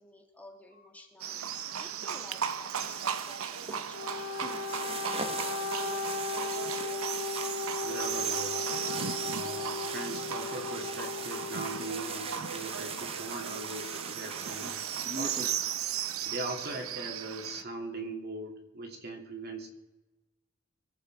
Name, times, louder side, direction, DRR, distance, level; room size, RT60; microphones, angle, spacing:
voice 1, 0.0-7.0, left 1 dB, 5° left, 2 dB, 1.5 m, -52 dB
Livestock farm animals working animals, 1.2-17.6, right 8 dB, 90° right, 0.7 m, -36 dB
sound 1, 2.8-15.5, right 5 dB, 30° right, 1.0 m, -41 dB
Wind instrument woodwind instrument, 3.8-11.9, left 4 dB, 70° left, 0.9 m, -37 dB
voice 2, 7.8-8.5 8.8-14.8 15.1-15.8 16.2-19.7, right 2 dB, 50° right, 3 dB, 2.6 m, -40 dB
23.5 x 8.9 x 4.7 m, 1.1 s
head